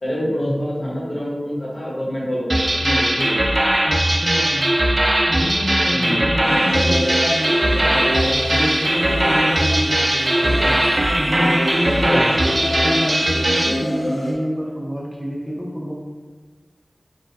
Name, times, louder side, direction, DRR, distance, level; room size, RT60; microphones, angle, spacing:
voice 1, 0.0-3.4 5.9-6.2 10.5-10.8 11.8-12.3, equal, 60° left, -5 dB, 1.2 m, -26 dB
sound 1, 2.5-13.8, right 1 dB, 35° right, 0.4 m, -19 dB
voice 2, 3.8-4.8 5.2-10.6 11.1-15.9, equal, 5° right, -4 dB, 0.8 m, -27 dB
sound 2, 6.4-14.3, left 1 dB, 85° left, 1.3 m, -28 dB
4.2 x 2.4 x 4.1 m, 1.4 s
wide cardioid pair, 75°, 0 cm